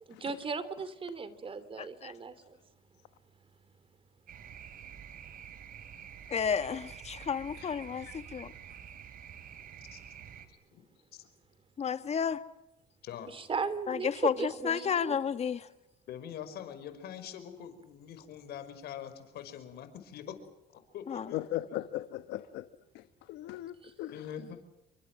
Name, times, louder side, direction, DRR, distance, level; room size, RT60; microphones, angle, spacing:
voice 1, 0.1-2.6 13.3-15.1 23.8-23.9, right 4 dB, 30° right, 15 dB, 3.1 m, -36 dB
voice 2, 1.8-2.1 6.3-8.5 11.8-12.4 13.9-15.7 21.1-21.3, left 7 dB, 40° left, 11 dB, 1.8 m, -32 dB
sound 1, 4.3-10.5, right 8 dB, 55° right, 4.2 m, -48 dB
voice 3, 8.0-8.4 21.3-22.7 22.9-24.3, left 14 dB, 90° left, 11 dB, 1.2 m, -39 dB
voice 4, 10.5-10.8 11.1-11.2 13.0-13.3 16.1-20.3 20.7-21.4 21.7-21.8 24.1-24.6, left 9 dB, 70° left, 9 dB, 5.4 m, -44 dB
29.0 x 24.5 x 6.4 m, 0.90 s
cardioid pair, 110°, 17 cm